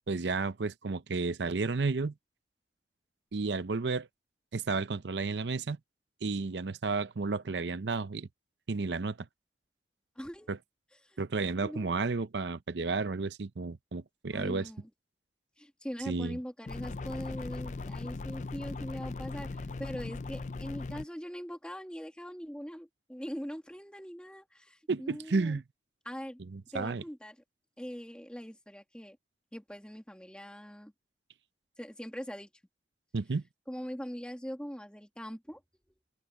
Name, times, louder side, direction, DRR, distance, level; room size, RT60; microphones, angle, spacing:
voice 1, 0.1-2.1 3.3-4.1 4.5-5.8 6.2-8.3 8.7-9.2 10.5-10.6 11.2-14.7 16.1-16.4 24.9-25.6 26.5-27.0 33.1-33.4, right 4 dB, 85° right, 0.7 m, -32 dB
voice 2, 10.2-10.5 11.1-11.2 11.6-11.9 14.3-14.9 15.6-25.5 26.1-26.4 26.7-27.4 27.8-29.2 29.5-30.9 31.8-32.5 33.7-35.6, equal, 5° left, 2.0 m, -42 dB
sound 1, 16.7-21.1, left 3 dB, 40° left, 0.5 m, -39 dB
open air
head